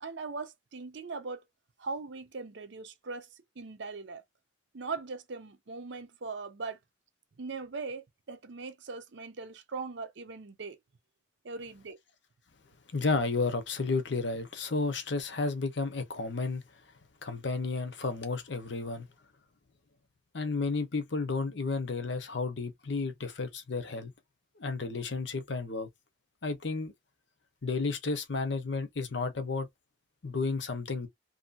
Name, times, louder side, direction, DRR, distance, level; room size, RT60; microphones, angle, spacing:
voice 1, 0.0-1.4 1.8-3.3 3.6-4.2 4.7-6.8 7.4-10.8 11.4-12.0, right 4 dB, 65° right, 0.6 m, -40 dB
voice 2, 12.9-16.6 17.2-19.1 20.3-24.1 24.6-25.9 26.4-26.9 27.6-29.7 30.2-31.1, left 3 dB, 65° left, 0.8 m, -32 dB
2.8 x 2.6 x 2.5 m
head